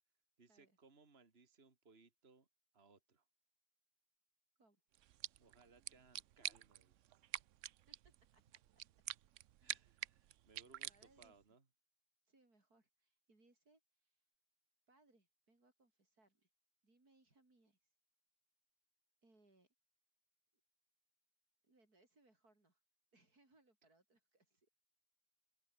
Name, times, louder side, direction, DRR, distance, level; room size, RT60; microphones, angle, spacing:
voice 1, 0.4-2.5 2.7-3.3 5.4-7.1 9.6-11.6, right 4 dB, 40° right, 2.6 m, -67 dB
sound 1, 4.9-11.4, right 13 dB, 65° right, 0.9 m, -49 dB
voice 2, 9.6-10.0 10.9-11.3 12.3-14.2 14.9-16.5 16.8-17.8 19.2-19.7 21.6-22.8 23.1-24.7, right 2 dB, 85° right, 6.4 m, -73 dB
omnidirectional pair, 1.6 m